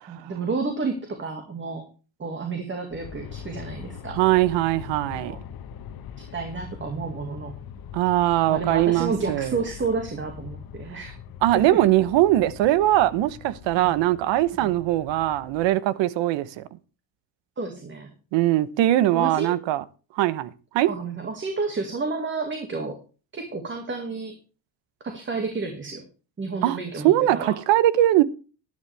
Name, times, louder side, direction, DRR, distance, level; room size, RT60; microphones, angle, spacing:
voice 1, 0.1-1.9 2.2-4.2 5.2-5.4 6.3-7.5 8.5-11.1 14.6-14.7 17.6-18.1 19.1-19.6 20.9-23.0 23.3-24.4 25.0-26.0 26.4-27.6, right 4 dB, 25° right, 2.0 m, -30 dB
Aircraft, 2.9-15.7, left 8 dB, 45° left, 1.4 m, -42 dB
voice 2, 4.1-5.4 7.9-9.5 11.4-16.6 18.3-19.8 20.1-20.9 26.6-26.8 27.0-28.2, right 14 dB, 65° right, 1.1 m, -21 dB
11.5 x 11.0 x 3.4 m
cardioid pair, 115°, 48 cm